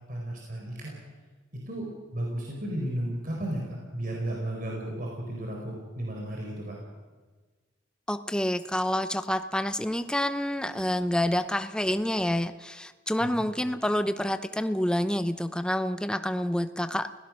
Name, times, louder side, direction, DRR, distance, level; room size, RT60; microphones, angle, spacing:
voice 1, 0.1-1.0 1.7-6.8 13.2-13.4, right 1 dB, 45° right, -1 dB, 4.5 m, -34 dB
voice 2, 8.1-17.1, left 1 dB, 5° left, 10 dB, 0.8 m, -28 dB
30.0 x 17.5 x 6.4 m, 1.4 s
head